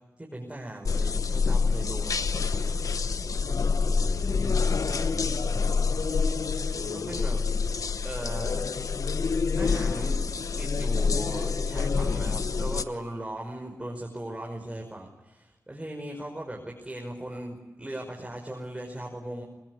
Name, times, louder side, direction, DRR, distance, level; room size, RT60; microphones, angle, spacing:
voice 1, 0.2-2.8 6.9-7.4 8.0-8.7 9.5-10.2 10.6-19.4, right 1 dB, 20° right, 0 dB, 5.6 m, -38 dB
sound 1, 0.8-12.8, left 4 dB, 70° left, 1.1 m, -27 dB
voice 2, 3.4-6.1, left 1 dB, 50° left, 6 dB, 5.5 m, -44 dB
24.5 x 20.5 x 9.7 m, 1.1 s
cardioid pair, 50°, 6 cm